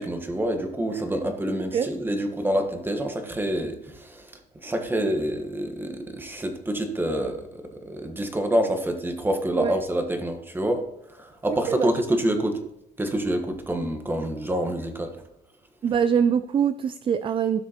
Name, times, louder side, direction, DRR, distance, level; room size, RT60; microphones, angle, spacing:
voice 1, 0.0-4.3 4.6-10.8 11.1-12.6 13.0-15.1, right 1 dB, 10° right, 5 dB, 1.4 m, -27 dB
voice 2, 11.5-11.9 15.8-17.6, right 7 dB, 30° right, 13 dB, 0.4 m, -23 dB
15.5 x 6.2 x 3.0 m, 0.88 s
cardioid pair, 110°, 17 cm